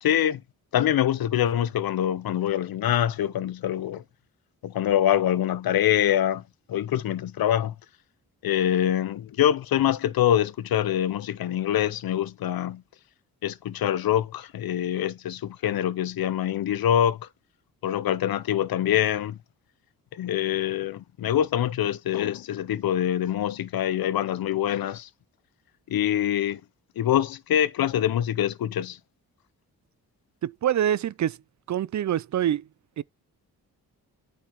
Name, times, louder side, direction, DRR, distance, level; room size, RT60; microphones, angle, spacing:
voice 1, 0.0-0.4 0.7-4.0 4.6-6.4 6.7-7.7 8.4-12.8 13.4-17.2 17.8-19.4 20.1-25.1 25.9-26.6 27.0-29.0, left 11 dB, 65° left, 0.7 m, -25 dB
voice 2, 30.4-31.4 31.7-32.6 33.0-33.1, right 10 dB, 50° right, 0.4 m, -25 dB
8.7 x 5.2 x 2.9 m
cardioid pair, 50°, 39 cm